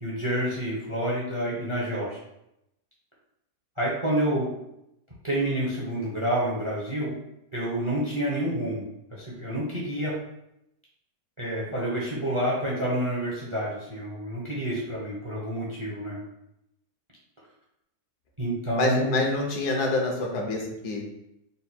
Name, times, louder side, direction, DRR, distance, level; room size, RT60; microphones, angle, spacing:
voice 1, 0.0-2.2 3.8-4.5 5.2-7.1 7.5-10.1 11.4-16.2 18.4-19.2, right 1 dB, 25° right, -5 dB, 0.7 m, -28 dB
voice 2, 18.8-21.0, left 2 dB, 70° left, 0 dB, 1.3 m, -26 dB
4.0 x 2.3 x 4.3 m, 0.83 s
omnidirectional pair, 1.8 m